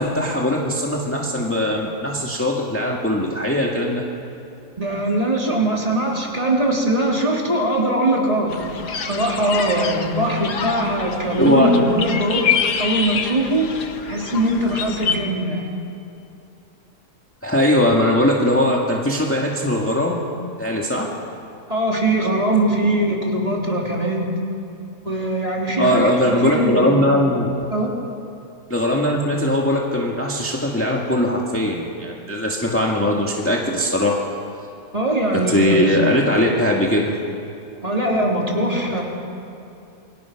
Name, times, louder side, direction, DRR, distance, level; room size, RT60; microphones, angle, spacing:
voice 1, 0.0-4.1 11.4-11.7 17.4-21.3 25.8-27.5 28.7-34.2 35.3-37.2, left 1 dB, 10° left, -2 dB, 2.0 m, -20 dB
voice 2, 4.8-8.5 9.0-12.5 12.8-13.7 14.0-15.7 21.7-24.3 25.0-27.0 27.7-27.9 34.9-36.0 37.8-39.0, right 1 dB, 20° right, -2 dB, 3.6 m, -21 dB
sound 1, 8.5-15.2, left 7 dB, 85° left, 1.9 m, -27 dB
28.0 x 23.5 x 6.1 m, 2.7 s
omnidirectional pair, 1.7 m